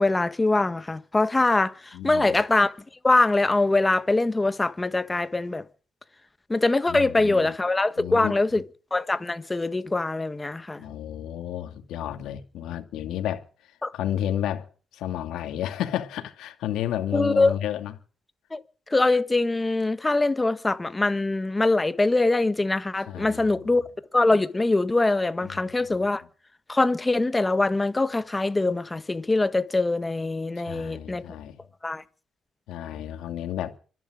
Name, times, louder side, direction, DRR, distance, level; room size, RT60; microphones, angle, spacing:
voice 1, 0.0-2.7 3.0-5.6 6.5-8.6 8.9-10.8 13.8-13.9 17.1-17.5 18.5-18.6 18.9-23.8 24.1-26.2 26.7-31.2 31.8-32.0, left 2 dB, 20° left, 1.4 m, -23 dB
voice 2, 1.9-2.4 6.9-7.5 8.0-8.4 10.8-14.7 14.9-17.9 23.1-23.8 25.4-26.0 30.6-31.6 32.7-33.7, left 11 dB, 85° left, 2.4 m, -32 dB
25.5 x 11.0 x 5.0 m
cardioid pair, 90°, 0 cm